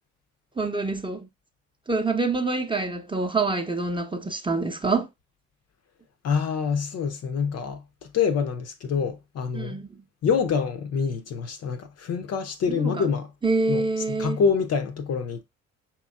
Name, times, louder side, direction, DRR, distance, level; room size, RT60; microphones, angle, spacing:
voice 1, 0.6-1.3 1.9-5.1 9.5-10.0 12.7-13.1 13.4-14.4, right 3 dB, 15° right, 0.7 m, -26 dB
voice 2, 6.2-9.8 10.2-13.3 13.7-15.4, left 6 dB, 40° left, 0.6 m, -26 dB
5.4 x 2.9 x 2.3 m
figure-of-eight pair, 45°, 39 cm